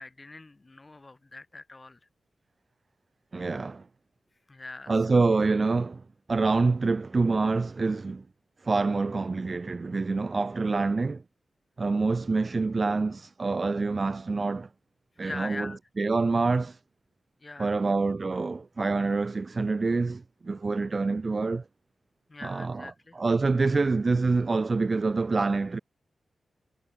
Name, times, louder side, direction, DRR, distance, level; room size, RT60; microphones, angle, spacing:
voice 1, 0.0-2.0 4.5-5.2 15.2-15.8 17.4-17.7 22.3-23.2, left 2 dB, 30° left, 6.3 m, -42 dB
voice 2, 3.3-3.9 4.9-6.0 6.3-8.2 8.6-11.2 11.8-14.7 15.2-15.7 16.0-16.8 17.6-21.6 22.4-22.9 23.2-25.8, right 3 dB, 40° right, 0.4 m, -26 dB
cardioid pair, 80°, 0 cm